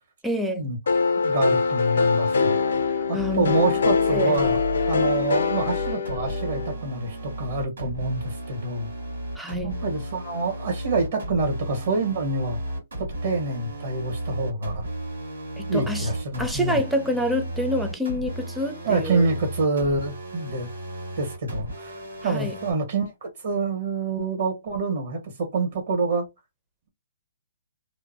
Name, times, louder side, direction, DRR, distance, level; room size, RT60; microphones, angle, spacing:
voice 1, 0.2-0.7 3.1-3.6 4.1-4.4 9.4-9.8 15.6-16.1 16.4-19.3 22.3-22.6, equal, 5° right, 0.5 m, -27 dB
sound 1, 0.9-6.7, left 5 dB, 75° left, 0.5 m, -23 dB
voice 2, 1.2-2.6 3.1-8.9 9.6-12.6 13.0-14.9 15.7-16.8 18.8-20.7 21.2-26.3, right 3 dB, 60° right, 1.4 m, -27 dB
sound 2, 3.2-22.7, right 1 dB, 90° right, 1.5 m, -34 dB
2.6 x 2.2 x 2.8 m
hypercardioid pair, 140°, 0 cm